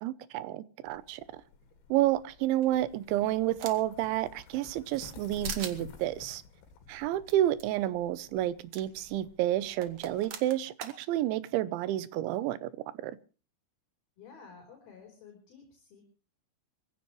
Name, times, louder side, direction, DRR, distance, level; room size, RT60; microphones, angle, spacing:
voice 1, 0.0-1.4 1.9-6.4 6.9-12.7 13.0-13.2, right 14 dB, 85° right, 3.3 m, -30 dB
sound 1, 0.9-10.3, left 7 dB, 80° left, 4.4 m, -51 dB
sound 2, 2.6-4.0 4.4-5.2 5.4-5.8 7.3-7.4 7.6-7.7 8.7-8.8 9.8-11.0, right 7 dB, 65° right, 1.6 m, -41 dB
voice 2, 14.2-16.0, left 5 dB, 55° left, 5.5 m, -52 dB
24.0 x 15.5 x 3.1 m
omnidirectional pair, 5.2 m